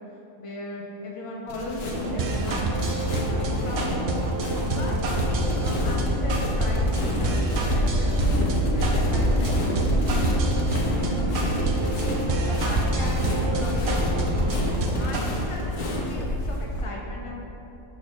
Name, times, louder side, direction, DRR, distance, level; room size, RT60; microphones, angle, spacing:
voice 1, 0.4-2.7 3.2-4.1 4.7-8.1 8.7-10.5 11.0-11.8 12.3-14.2 14.9-17.3, left 1 dB, 30° left, -2 dB, 0.8 m, -37 dB
sound 1, 1.5-16.8, left 1 dB, 85° left, 1.3 m, -27 dB
sound 2, 1.9-15.2, right 2 dB, 60° right, 0.9 m, -28 dB
6.5 x 4.0 x 5.2 m, 2.9 s
omnidirectional pair, 1.3 m